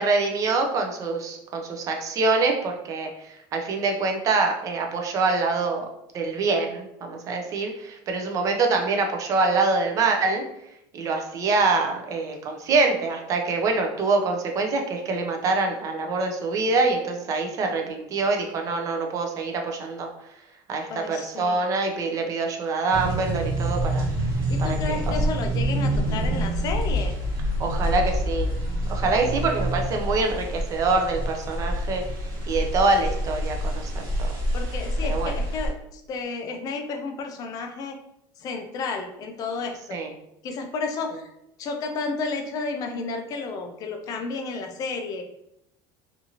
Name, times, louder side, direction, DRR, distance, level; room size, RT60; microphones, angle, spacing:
voice 1, 0.0-5.9 6.1-10.4 10.9-20.1 20.7-24.1 24.6-24.8 27.6-28.5 28.9-32.0 32.5-33.9 34.2-34.3 35.0-35.3 39.9-40.1, right 3 dB, 30° right, 3 dB, 0.4 m, -25 dB
voice 2, 20.9-21.6 24.5-27.2 34.5-38.0 38.4-40.0 40.4-41.2 41.6-45.2, left 4 dB, 35° left, 5 dB, 0.4 m, -32 dB
sound 1, 22.9-35.7, equal, 50° right, 1.1 m, -27 dB
2.6 x 2.5 x 2.8 m, 0.81 s
cardioid pair, 155°, 11 cm